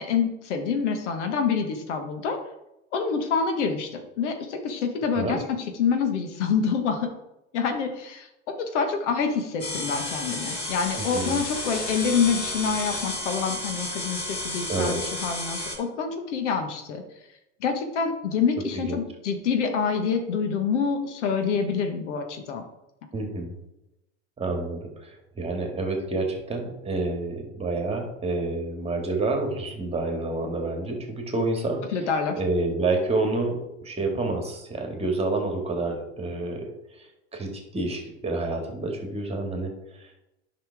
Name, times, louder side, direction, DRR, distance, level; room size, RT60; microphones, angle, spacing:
voice 1, 0.0-2.4 2.9-7.1 7.5-8.3 8.6-17.0 17.6-22.6 31.9-32.4, left 6 dB, 65° left, 5 dB, 1.5 m, -26 dB
sound 1, 9.6-15.7, left 2 dB, 25° left, 3.3 m, -32 dB
voice 2, 10.9-11.4 14.7-15.0 18.7-19.0 23.1-23.6 24.4-31.8 32.4-36.7 37.0-40.2, right 2 dB, 15° right, 2 dB, 2.1 m, -29 dB
10.5 x 5.8 x 3.5 m, 0.90 s
hypercardioid pair, 90°, 37 cm